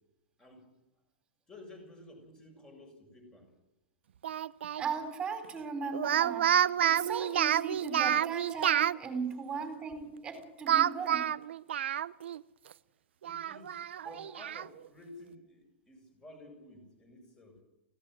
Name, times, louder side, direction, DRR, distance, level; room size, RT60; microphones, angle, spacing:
voice 1, 1.5-3.5 11.9-12.0 13.2-17.6, left 1 dB, 10° left, 3 dB, 7.0 m, -53 dB
Speech, 4.2-4.8 5.9-9.0 10.7-12.4 12.7-12.8 13.2-14.7, right 10 dB, 90° right, 0.7 m, -29 dB
voice 2, 4.8-11.3 14.0-14.1, right 5 dB, 15° right, 6 dB, 4.0 m, -38 dB
25.0 x 17.0 x 7.8 m, 0.97 s
supercardioid pair, 160°, 6 cm